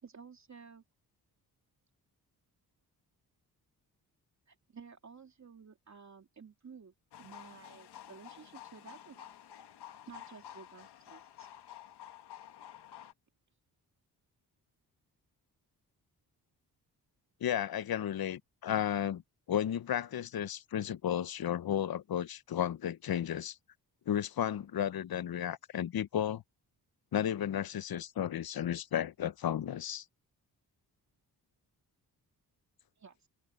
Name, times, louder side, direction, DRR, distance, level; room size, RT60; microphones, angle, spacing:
voice 1, 0.0-0.8 4.5-9.3 10.1-11.5 33.0-33.3, right 6 dB, 45° right, 3.0 m, -53 dB
sound 1, 7.1-13.1, left 11 dB, 90° left, 1.7 m, -51 dB
voice 2, 17.4-19.2 19.5-23.6 24.1-26.4 27.1-30.0, left 10 dB, 65° left, 1.0 m, -33 dB
cardioid pair, 85°, 39 cm